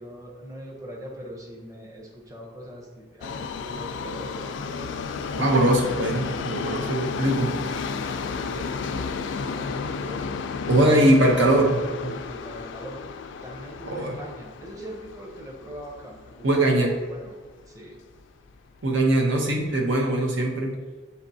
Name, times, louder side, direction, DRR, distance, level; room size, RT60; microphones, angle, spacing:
voice 1, 0.0-4.9 6.6-7.3 8.2-10.2 12.3-16.6 17.1-17.3 17.7-18.0, equal, 20° right, -2 dB, 0.7 m, -41 dB
Subway metro underground, 3.2-17.3 17.6-17.7 18.6-18.7 19.0-19.1 19.7-19.8, left 5 dB, 80° left, 0.3 m, -33 dB
voice 2, 5.3-7.5 10.7-12.1 13.9-14.1 16.4-16.9 18.8-20.7, right 1 dB, 90° right, 1 dB, 0.8 m, -21 dB
6.9 x 2.8 x 2.7 m, 1.3 s
head